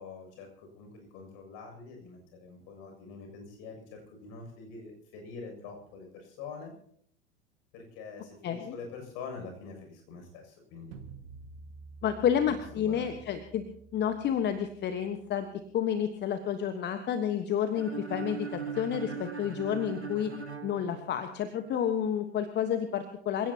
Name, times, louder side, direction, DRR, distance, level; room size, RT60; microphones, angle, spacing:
voice 1, 0.0-6.7 7.7-11.0 12.5-13.1, left 4 dB, 50° left, 3 dB, 7.4 m, -45 dB
voice 2, 8.4-8.7 12.0-13.6 13.9-15.5 15.7-20.3 20.6-23.5, left 9 dB, 30° left, 8 dB, 1.4 m, -30 dB
sound 1, 10.9-15.9, right 4 dB, 45° right, 2.1 m, -51 dB
sound 2, 17.7-21.6, right 5 dB, 90° right, 1.7 m, -40 dB
27.0 x 17.0 x 3.0 m, 0.66 s
figure-of-eight pair, 85°, 32 cm